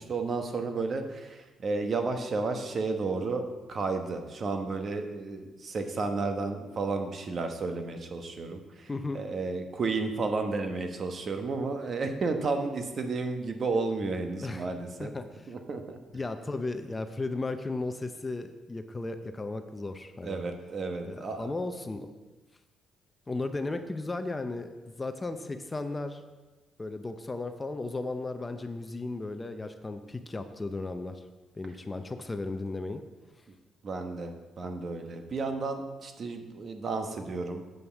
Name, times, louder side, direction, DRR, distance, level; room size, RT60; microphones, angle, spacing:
voice 1, 0.0-15.1 15.5-16.0 20.2-21.5 33.8-37.7, right 3 dB, 50° right, 5 dB, 1.2 m, -32 dB
voice 2, 8.9-9.2 14.4-14.7 15.0-15.3 16.1-20.4 21.0-22.1 23.3-26.2 26.8-31.2 31.6-33.0, left 2 dB, 20° left, 8 dB, 0.7 m, -35 dB
7.9 x 5.4 x 7.2 m, 1.2 s
cardioid pair, 90°, 0 cm